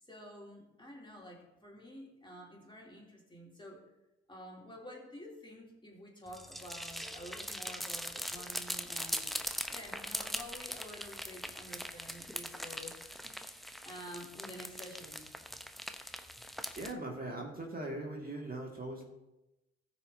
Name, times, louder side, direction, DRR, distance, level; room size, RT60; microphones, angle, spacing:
voice 1, 0.0-3.8 4.3-9.3 9.7-15.3, equal, 15° left, -2 dB, 2.8 m, -50 dB
sound 1, 6.3-16.9, equal, ahead, 0.7 m, -41 dB
voice 2, 16.8-19.0, right 2 dB, 30° right, -1 dB, 1.9 m, -40 dB
14.5 x 6.6 x 2.7 m, 0.97 s
hypercardioid pair, 55°, 30 cm